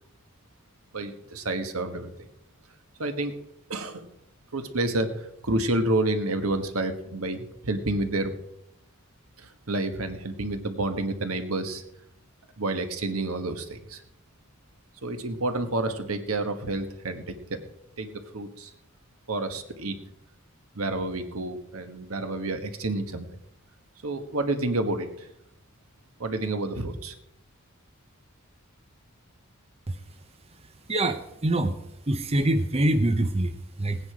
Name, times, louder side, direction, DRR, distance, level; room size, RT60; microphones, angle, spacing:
voice 1, 0.9-2.1 3.0-3.4 3.7-4.1 4.5-8.4 9.4-11.8 12.6-14.0 15.0-17.6 18.0-18.7 19.3-20.0 20.7-23.3 24.0-25.3 26.2-27.1, right 2 dB, 75° right, 8 dB, 1.4 m, -29 dB
voice 2, 30.9-31.8 32.1-34.0, right 1 dB, 30° right, 7 dB, 0.7 m, -25 dB
18.0 x 9.7 x 4.9 m, 0.81 s
head